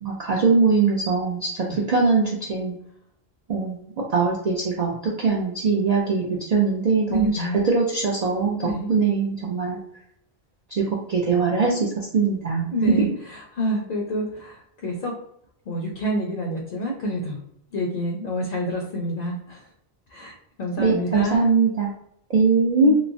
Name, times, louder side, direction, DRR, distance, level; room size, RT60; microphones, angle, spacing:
voice 1, 0.0-2.8 3.5-3.8 4.1-7.3 7.7-9.8 10.8-11.9 12.1-12.7 13.0-13.1 20.8-21.9 22.3-22.9, right 4 dB, 55° right, -3 dB, 0.4 m, -21 dB
voice 2, 7.1-7.6 8.6-8.9 12.7-15.1 15.7-17.4 17.7-19.6 20.1-21.5 22.8-23.0, equal, 60° left, -1 dB, 0.7 m, -28 dB
3.0 x 2.0 x 2.5 m, 0.72 s
omnidirectional pair, 1.1 m